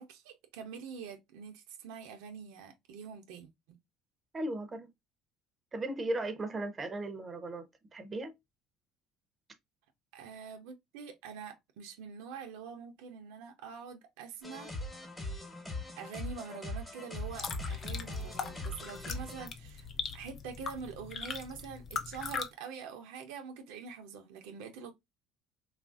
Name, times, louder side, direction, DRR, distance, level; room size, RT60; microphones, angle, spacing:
voice 1, 0.0-3.8 10.1-14.7 16.0-19.9 20.1-24.9, right 6 dB, 80° right, 0.5 m, -45 dB
voice 2, 4.3-4.9 5.7-8.3, right 2 dB, 30° right, 0.6 m, -36 dB
sound 1, 14.4-19.5, left 1 dB, 15° left, 1.2 m, -40 dB
sound 2, 17.1-22.5, left 5 dB, 45° left, 0.5 m, -40 dB
3.2 x 2.4 x 2.4 m
supercardioid pair, 80°, 0 cm